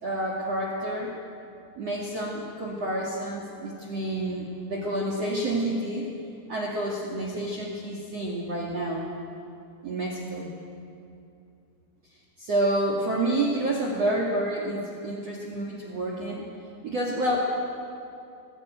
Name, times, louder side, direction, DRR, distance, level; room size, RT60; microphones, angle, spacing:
voice 1, 0.0-1.1 1.8-6.1 6.5-9.1 9.8-10.5 12.4-16.5 16.8-17.4, right 1 dB, 45° right, -2 dB, 2.4 m, -29 dB
23.0 x 16.5 x 9.2 m, 2.5 s
omnidirectional pair, 5.6 m